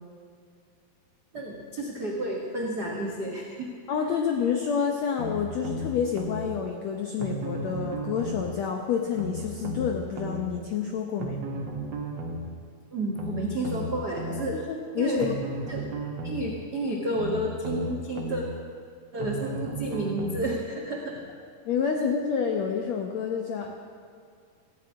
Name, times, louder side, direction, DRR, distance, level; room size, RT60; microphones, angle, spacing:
voice 1, 1.3-3.7 12.9-14.6 15.0-15.3 15.7-15.9 16.2-18.4 19.1-21.2, right 1 dB, 80° right, -1 dB, 0.9 m, -31 dB
voice 2, 3.9-11.4 14.4-15.3 21.6-23.8, left 7 dB, 80° left, 3 dB, 1.5 m, -28 dB
sound 1, 5.2-6.4 7.2-8.5 9.2-10.4 11.2-12.4 13.2-14.4 15.2-16.4 17.2-18.4 19.2-20.5 21.2-21.3, right 1 dB, 55° right, 1.2 m, -34 dB
15.5 x 9.0 x 9.4 m, 2.2 s
omnidirectional pair, 4.4 m